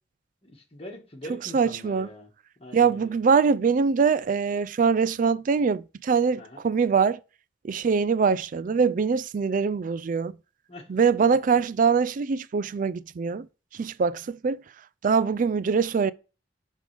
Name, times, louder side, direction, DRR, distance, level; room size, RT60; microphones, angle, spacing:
voice 1, 0.4-2.3 2.6-3.1 6.4-6.6 10.7-10.9 11.2-11.3, left 1 dB, 35° left, 1.6 m, -43 dB
voice 2, 1.5-2.1 2.7-7.2 7.6-10.3 10.9-13.5 13.7-14.6 15.0-16.1, right 5 dB, 45° right, 0.3 m, -23 dB
10.5 x 3.7 x 3.3 m
head